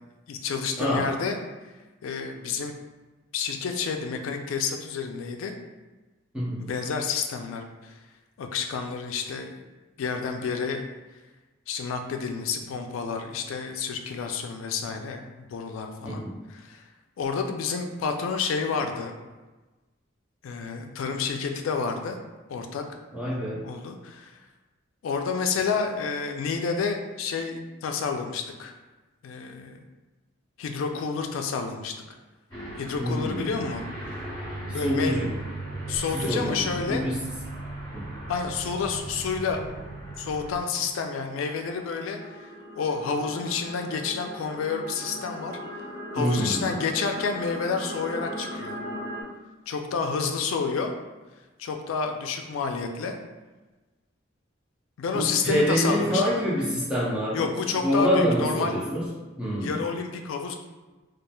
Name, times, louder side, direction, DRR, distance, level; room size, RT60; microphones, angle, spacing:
voice 1, 0.3-1.4 2.0-2.7 3.3-5.5 6.6-7.9 8.4-9.6 10.0-10.8 11.7-15.2 15.5-16.2 16.5-16.8 17.2-19.1 20.4-22.2 22.5-22.8 23.3-24.3 25.0-28.7 29.2-29.8 30.6-31.9 32.8-33.8 34.7-35.2 35.9-37.0 38.3-39.6 40.2-42.5 42.8-45.8 46.1-48.8 49.7-50.9 51.6-53.2 55.0-56.2 57.3-58.7 59.6-60.6, left 5 dB, 85° left, 4 dB, 0.3 m, -29 dB
voice 2, 0.8-1.1 6.3-6.6 16.0-16.3 23.1-23.6 33.0-33.5 34.7-35.3 36.1-36.6 36.9-37.3 37.9-38.1 46.2-46.7 55.1-57.5 57.8-59.0 59.4-59.7, equal, 5° right, -8 dB, 0.5 m, -26 dB
Aircraft, 32.5-40.6, right 1 dB, 20° left, 1.5 m, -37 dB
sound 1, 38.0-38.2 39.1-49.2, equal, 45° right, 0.8 m, -40 dB
3.0 x 2.3 x 2.2 m, 1.2 s
head